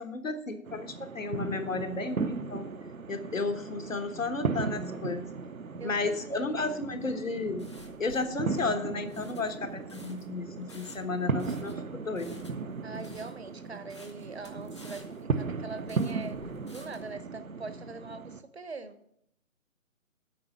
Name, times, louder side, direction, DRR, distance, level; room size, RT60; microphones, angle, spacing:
voice 1, 0.0-2.7 3.1-5.3 5.8-7.7 8.0-12.5, left 3 dB, 70° left, 1.3 m, -33 dB
sound 1, 0.6-18.4, right 4 dB, 80° right, 0.8 m, -36 dB
voice 2, 5.8-6.8 12.8-19.0, right 3 dB, 50° right, 0.9 m, -43 dB
sound 2, 7.0-17.1, left 2 dB, 20° left, 0.7 m, -54 dB
8.4 x 5.6 x 7.8 m
figure-of-eight pair, 150°, 41 cm